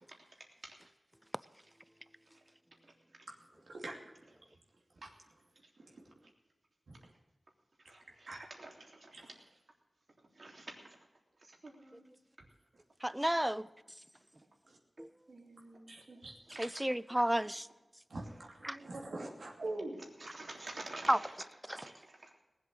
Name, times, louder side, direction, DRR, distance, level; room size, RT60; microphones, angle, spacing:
voice 1, 0.4-0.8 2.3-2.4 2.8-3.2 5.6-6.3 6.9-7.1 7.8-9.5 10.2-11.0 11.4-12.2 15.3-16.7 17.2-17.5 18.7-18.9 20.0-21.4 21.7-22.3, right 2 dB, 60° right, 3.3 m, -51 dB
voice 2, 3.7-4.0 5.0-5.1 5.8-6.1 6.9-7.0 8.3-8.4 9.1-9.2 14.7-14.8 15.9-16.3 18.1-20.0, right 2 dB, 80° right, 2.7 m, -43 dB
voice 3, 13.0-13.7 15.0-15.1 16.6-17.7 18.6-18.8 21.1-21.2, right 1 dB, 10° right, 0.5 m, -31 dB
19.0 x 7.9 x 6.6 m
wide cardioid pair, 70°, 0 cm